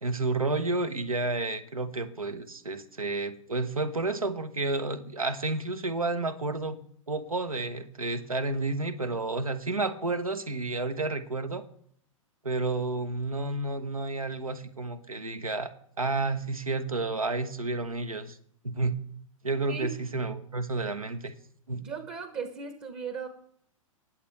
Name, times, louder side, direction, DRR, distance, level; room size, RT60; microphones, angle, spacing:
voice 1, 0.0-6.8 7.1-11.6 12.4-15.7 16.0-18.4 18.6-19.0 19.4-21.3 21.7-21.8, right 3 dB, 85° right, 10 dB, 1.1 m, -31 dB
voice 2, 21.7-23.3, right 6 dB, 30° right, 9 dB, 1.1 m, -37 dB
19.5 x 7.3 x 3.3 m, 0.64 s
figure-of-eight pair, 105°, 18 cm